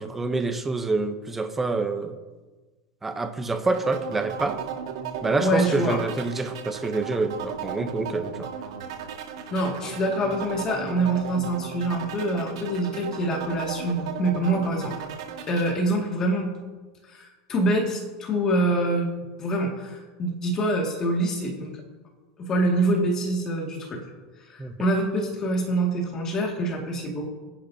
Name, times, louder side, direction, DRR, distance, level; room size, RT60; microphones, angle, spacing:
voice 1, 0.0-2.2 3.0-4.6 5.2-8.5 24.6-24.7, right 3 dB, 10° right, 8 dB, 0.7 m, -27 dB
sound 1, 3.7-15.8, right 8 dB, 80° right, 1.9 m, -35 dB
voice 2, 5.4-6.0 9.5-14.9 15.5-16.5 17.1-19.1 19.4-21.8 22.4-24.0 24.5-27.3, right 1 dB, 20° left, 0 dB, 2.0 m, -25 dB
25.0 x 10.5 x 2.7 m, 1.3 s
supercardioid pair, 175°, 3 cm